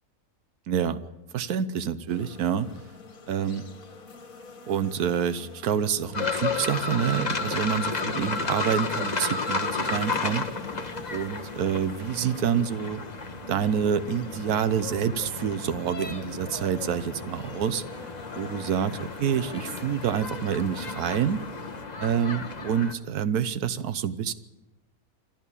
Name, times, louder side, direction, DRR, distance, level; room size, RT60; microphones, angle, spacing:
voice 1, 0.7-1.0 1.3-2.7 3.3-3.6 4.7-10.5 11.1-13.0 13.5-17.8 18.4-21.4 22.0-24.3, right 8 dB, 80° right, 13 dB, 1.4 m, -27 dB
sound 1, 2.1-21.8, left 4 dB, 65° left, 2.2 m, -47 dB
sound 2, 6.1-22.9, left 3 dB, 30° left, 1.3 m, -33 dB
sound 3, 10.4-18.9, equal, 35° right, 2.5 m, -52 dB
28.0 x 12.5 x 8.5 m, 1.0 s
omnidirectional pair, 1.6 m